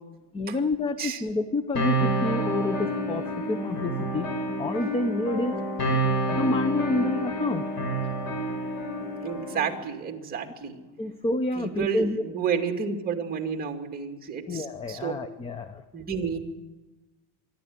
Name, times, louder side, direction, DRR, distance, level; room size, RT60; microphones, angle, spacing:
voice 1, 0.3-4.3 4.6-5.6 6.3-7.7 11.0-12.2 14.5-15.8, left 2 dB, 15° left, 11 dB, 0.7 m, -28 dB
sound 1, 1.8-9.8, right 1 dB, 60° left, 6.2 m, -28 dB
voice 2, 9.2-10.8 11.6-15.1 15.9-16.4, right 6 dB, 25° right, 3 dB, 2.5 m, -31 dB
25.0 x 12.0 x 9.6 m, 1.1 s
cardioid pair, 155°, 39 cm